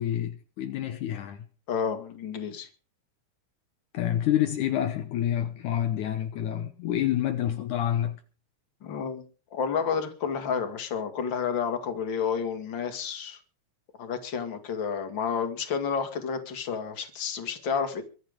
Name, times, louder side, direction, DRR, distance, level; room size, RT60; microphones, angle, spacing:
voice 1, 0.0-1.5 3.9-8.2, left 11 dB, 85° left, 1.7 m, -28 dB
voice 2, 1.7-2.7 8.8-9.2 9.5-13.4 14.0-18.0, left 6 dB, 35° left, 2.0 m, -30 dB
24.0 x 8.1 x 5.2 m
omnidirectional pair, 5.1 m